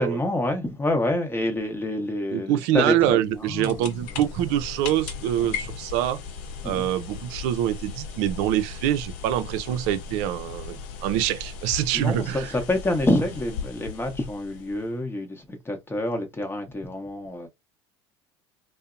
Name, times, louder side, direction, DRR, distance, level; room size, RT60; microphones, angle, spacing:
voice 1, 0.0-4.0 5.5-5.6 6.6-6.9 11.9-17.5, left 1 dB, 15° left, 0.8 m, -27 dB
voice 2, 2.3-6.2 6.6-12.5, right 12 dB, 65° right, 0.4 m, -25 dB
sound 1, 3.2-15.0, left 5 dB, 60° left, 0.6 m, -37 dB
2.7 x 2.0 x 2.5 m
hypercardioid pair, 85°, 15 cm